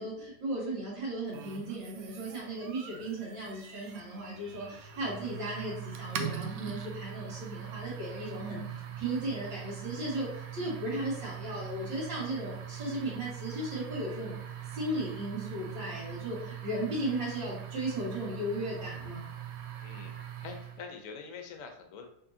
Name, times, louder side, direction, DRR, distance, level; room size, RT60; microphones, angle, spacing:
voice 1, 0.0-14.4 14.7-19.2, right 1 dB, 90° right, -9 dB, 2.2 m, -36 dB
sound 1, 1.3-20.9, right 10 dB, 70° right, 0.9 m, -42 dB
voice 2, 19.8-20.1 20.4-22.1, left 5 dB, 60° left, 5 dB, 0.9 m, -44 dB
5.2 x 3.7 x 2.7 m, 0.77 s
omnidirectional pair, 1.9 m